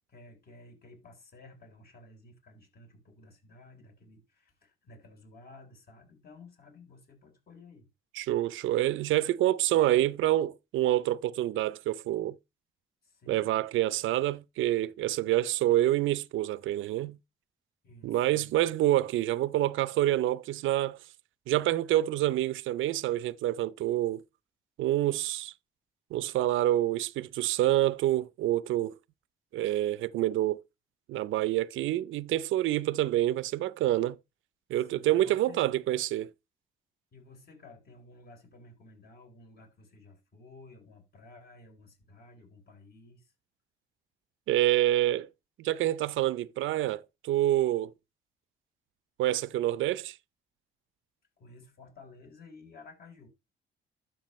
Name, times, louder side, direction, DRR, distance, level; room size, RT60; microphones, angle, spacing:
voice 1, 0.1-7.9 13.0-13.5 17.8-18.7 34.8-35.7 37.1-43.3 51.4-53.3, left 3 dB, 50° left, 3.8 m, -54 dB
voice 2, 8.1-12.4 13.3-17.2 18.0-21.0 21.5-24.2 24.8-25.5 26.1-28.9 29.5-30.6 31.1-34.2 34.7-36.3 44.5-45.3 45.6-47.9 49.2-50.2, right 14 dB, 80° right, 0.5 m, -27 dB
12.0 x 6.0 x 3.1 m
cardioid pair, 90°, 20 cm